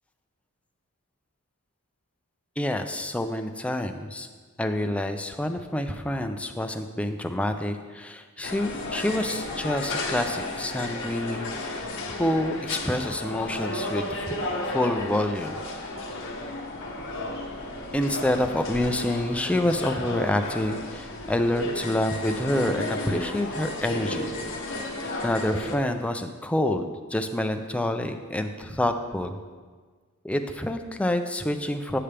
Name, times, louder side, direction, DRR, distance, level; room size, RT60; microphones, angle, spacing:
voice 1, 2.6-4.3 4.6-14.4 14.7-15.6 17.9-24.3 25.2-29.4 30.2-32.0, left 1 dB, 5° left, 6 dB, 0.4 m, -27 dB
sound 1, 8.4-25.8, left 2 dB, 60° left, 1.0 m, -33 dB
8.7 x 6.8 x 3.3 m, 1.5 s
head